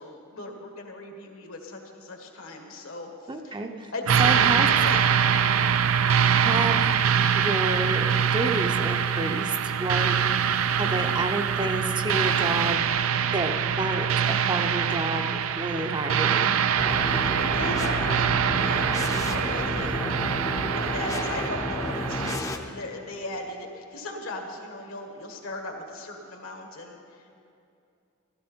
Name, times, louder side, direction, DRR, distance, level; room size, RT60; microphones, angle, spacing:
voice 1, 0.0-3.6 3.9-4.5 4.8-5.1 10.8-11.1 16.9-20.1 20.6-27.2, left 2 dB, 70° left, 3 dB, 1.7 m, -37 dB
voice 2, 3.3-3.9 4.2-4.7 6.3-6.9 7.4-10.2 10.8-12.8 13.3-16.5, right 2 dB, 20° right, 4 dB, 0.7 m, -29 dB
sound 1, 4.1-22.4, right 8 dB, 70° right, 0.4 m, -24 dB
sound 2, 16.8-22.6, left 1 dB, 15° left, 0.7 m, -31 dB
14.0 x 13.5 x 4.4 m, 2.6 s
head